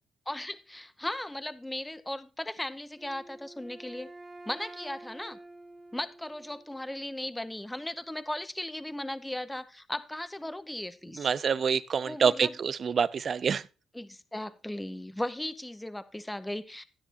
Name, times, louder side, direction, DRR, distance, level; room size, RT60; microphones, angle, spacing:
voice 1, 0.3-4.1 4.5-5.4 5.9-11.3 12.1-12.5 13.9-16.8, left 1 dB, 10° left, 0.8 m, -37 dB
Wind instrument woodwind instrument, 2.9-6.9, right 2 dB, 20° right, 2.1 m, -49 dB
voice 2, 11.1-13.7, right 6 dB, 50° right, 0.4 m, -27 dB
12.5 x 9.9 x 2.9 m
cardioid pair, 90°, 0 cm